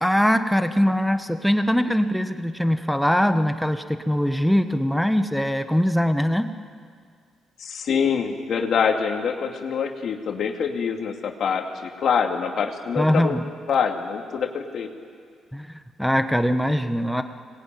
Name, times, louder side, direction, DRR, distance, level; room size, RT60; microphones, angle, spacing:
voice 1, 0.0-6.5 13.0-13.5 15.5-17.2, equal, ahead, 8 dB, 1.2 m, -22 dB
voice 2, 7.6-13.4 13.7-14.9, left 6 dB, 65° left, 3 dB, 2.5 m, -25 dB
25.0 x 20.5 x 9.3 m, 2.1 s
cardioid pair, 90°, 0 cm